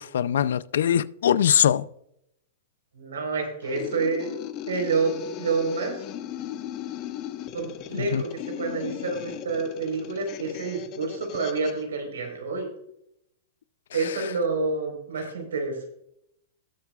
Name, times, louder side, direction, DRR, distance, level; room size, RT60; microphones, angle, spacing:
voice 1, 0.0-1.9 7.9-8.2, left 9 dB, 75° left, 0.5 m, -22 dB
voice 2, 2.9-4.3 4.7-6.0 7.5-12.7 13.9-15.9, right 4 dB, 90° right, 4.4 m, -28 dB
sound 1, 3.6-11.8, left 11 dB, 40° left, 1.0 m, -37 dB
19.5 x 7.2 x 2.4 m
hypercardioid pair, 130°, 0 cm